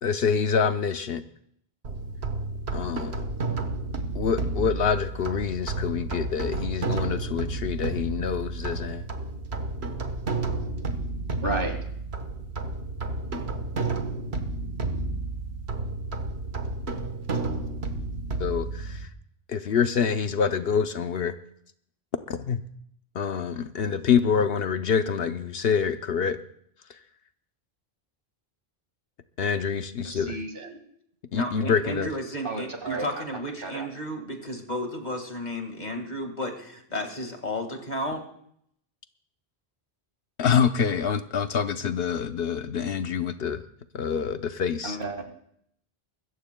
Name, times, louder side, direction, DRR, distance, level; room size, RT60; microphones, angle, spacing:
voice 1, 0.0-1.2 2.7-3.3 4.1-9.1 18.4-19.1 19.5-21.4 22.3-22.6 23.1-26.4 26.9-27.0 29.4-30.4 31.3-32.1 40.4-43.6 43.9-45.0, left 6 dB, 70° left, 9 dB, 0.9 m, -26 dB
sound 1, 1.8-19.1, right 3 dB, 85° right, 1.5 m, -31 dB
voice 2, 11.4-11.8 30.0-30.8 32.4-33.2 33.6-33.9 44.8-45.2, right 2 dB, 60° right, 4 dB, 2.1 m, -32 dB
voice 3, 31.4-38.2, equal, 45° left, 4 dB, 2.0 m, -33 dB
24.5 x 14.0 x 2.2 m, 0.69 s
omnidirectional pair, 1.1 m